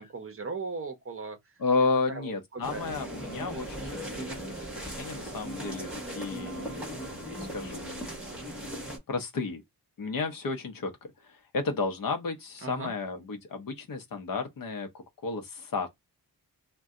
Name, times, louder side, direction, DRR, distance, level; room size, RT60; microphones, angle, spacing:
voice 1, 0.0-1.4 1.8-2.9 12.6-12.9, right 4 dB, 35° right, 0.7 m, -38 dB
voice 2, 1.6-4.4 4.8-8.1 9.1-9.6 10.0-10.9 11.2-15.9, left 4 dB, 55° left, 0.7 m, -32 dB
sound 1, 2.6-9.0, right 1 dB, ahead, 1.2 m, -38 dB
2.6 x 2.2 x 3.5 m
wide cardioid pair, 180°, 40 cm